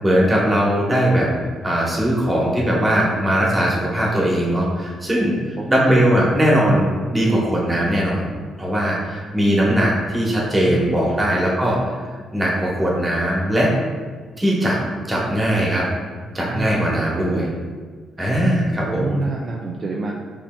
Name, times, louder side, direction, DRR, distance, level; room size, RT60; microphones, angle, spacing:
voice 1, 0.0-1.3 1.6-8.3 8.6-12.0 12.3-13.7 14.4-14.8 15.1-15.9 16.3-17.5 18.2-19.2, equal, 20° right, -4 dB, 1.1 m, -19 dB
voice 2, 5.6-6.0 10.6-11.3 16.5-17.4 18.8-20.1, right 3 dB, 45° right, -1 dB, 0.3 m, -28 dB
5.2 x 2.8 x 2.2 m, 1.5 s
cardioid pair, 90°, 0 cm